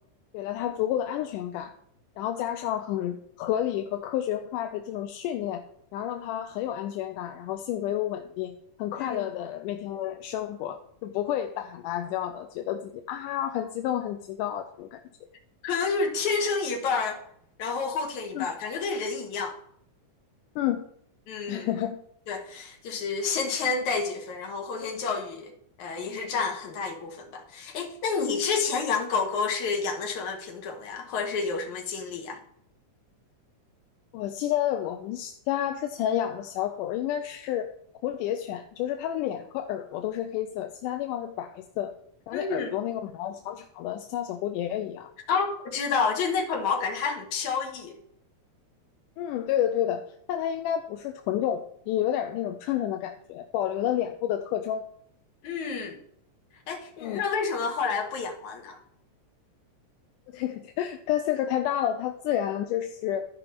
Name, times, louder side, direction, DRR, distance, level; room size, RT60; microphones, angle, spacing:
voice 1, 0.3-1.7 2.2-5.6 5.9-15.0 18.3-18.5 20.6-20.8 21.5-22.0 34.1-37.7 38.0-41.9 42.3-45.1 49.2-50.0 50.3-54.9 57.0-57.2 60.3-63.3, left 11 dB, 85° left, 6 dB, 2.2 m, -30 dB
voice 2, 8.9-9.3 15.6-17.2 17.6-19.6 21.3-21.7 22.3-25.5 25.8-32.4 42.3-42.8 45.3-47.9 55.4-56.0 56.7-58.8, left 5 dB, 70° left, 3 dB, 2.8 m, -29 dB
14.0 x 5.3 x 4.4 m, 0.70 s
omnidirectional pair, 3.6 m